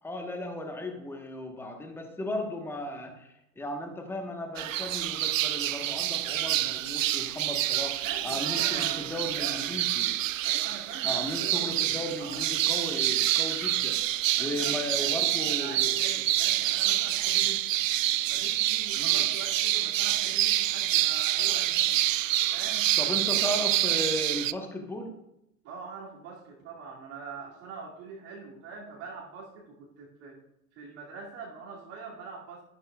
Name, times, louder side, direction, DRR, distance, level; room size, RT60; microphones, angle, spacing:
voice 1, 0.0-10.2 11.0-14.0 14.4-15.9 18.9-19.3 23.0-25.1, left 1 dB, 5° left, 4 dB, 1.3 m, -36 dB
sound 1, 4.6-24.5, right 14 dB, 60° right, 0.5 m, -27 dB
voice 2, 8.0-9.7 10.4-12.5 14.3-17.7 18.3-22.0 22.5-22.9 25.6-30.4 30.7-32.6, right 4 dB, 30° right, -5 dB, 2.5 m, -43 dB
12.5 x 11.5 x 2.4 m, 0.83 s
figure-of-eight pair, 90°, 44 cm